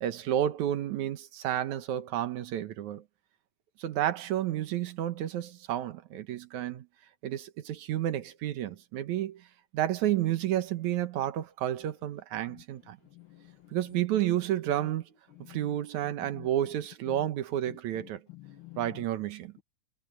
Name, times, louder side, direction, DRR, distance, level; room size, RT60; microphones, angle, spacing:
voice 1, 0.0-3.0 3.8-6.9 7.2-9.4 9.7-13.0 13.7-15.1 15.5-18.2 18.8-19.6, right 12 dB, 80° right, 2.5 m, -31 dB
voice 2, 13.1-13.8 15.4-15.8 16.3-16.5 17.7-19.0, left 16 dB, 65° left, 1.4 m, -49 dB
omnidirectional pair, 3.3 m